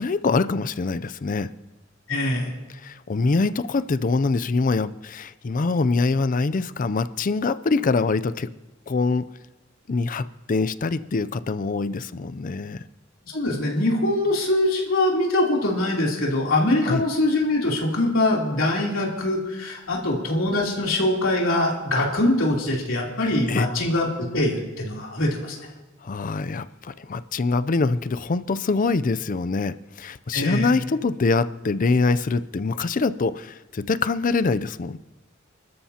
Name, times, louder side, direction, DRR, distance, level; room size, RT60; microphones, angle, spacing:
voice 1, 0.0-1.5 2.8-8.5 8.9-9.2 9.9-12.8 16.8-17.0 23.5-23.7 26.0-35.0, left 3 dB, 40° left, 14 dB, 0.5 m, -24 dB
voice 2, 2.1-2.5 13.2-25.6 30.3-30.7, left 1 dB, 75° left, -3 dB, 3.3 m, -23 dB
29.5 x 13.0 x 2.9 m, 1.1 s
head